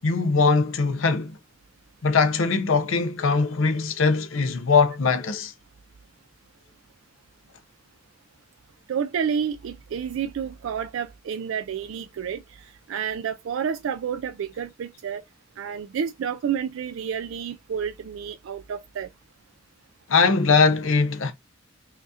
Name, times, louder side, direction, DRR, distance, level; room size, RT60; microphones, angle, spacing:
voice 1, 0.0-1.4 2.0-5.5 20.1-21.3, left 4 dB, 75° left, 0.6 m, -21 dB
voice 2, 8.9-15.2 15.6-19.1, right 7 dB, 75° right, 0.3 m, -30 dB
5.7 x 2.4 x 2.7 m
head